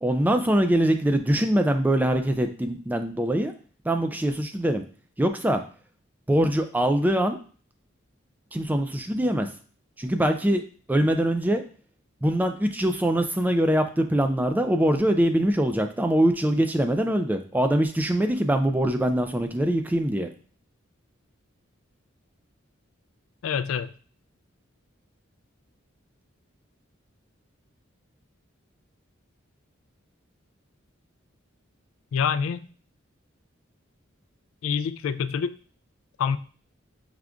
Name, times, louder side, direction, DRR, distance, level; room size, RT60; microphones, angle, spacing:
voice 1, 0.0-3.5 3.8-4.8 5.2-5.6 6.3-7.4 8.5-9.5 10.0-10.6 10.9-11.6 12.2-20.3, right 1 dB, 10° right, 7 dB, 0.3 m, -23 dB
voice 2, 23.4-23.9 32.1-32.7 34.6-35.6 36.2-36.4, left 6 dB, 90° left, 13 dB, 0.3 m, -26 dB
5.0 x 3.4 x 2.4 m, 0.41 s
head